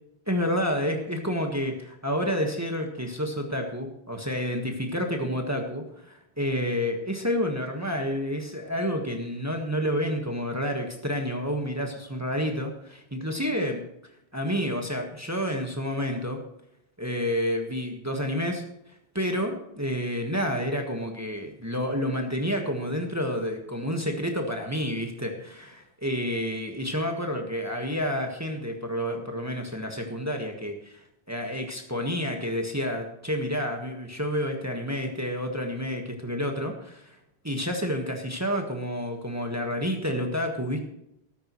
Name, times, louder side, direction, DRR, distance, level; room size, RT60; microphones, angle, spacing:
voice 1, 0.3-13.8 14.3-16.4 17.0-18.6 19.1-37.2 37.4-40.8, equal, 15° right, 2 dB, 1.5 m, -29 dB
13.5 x 13.5 x 3.1 m, 0.81 s
omnidirectional pair, 1.1 m